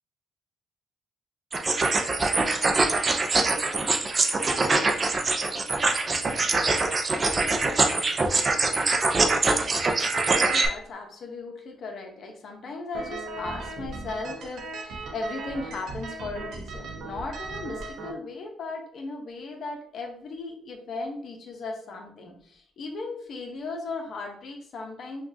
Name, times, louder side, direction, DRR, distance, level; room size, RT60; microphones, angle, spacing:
sound 1, 1.5-10.7, right 3 dB, 35° right, 0.5 m, -23 dB
voice 1, 10.3-25.2, left 3 dB, 60° left, 2 dB, 0.9 m, -37 dB
sound 2, 12.9-18.1, right 3 dB, 75° right, 0.8 m, -37 dB
5.1 x 2.4 x 2.7 m, 0.63 s
cardioid pair, 90°, 0 cm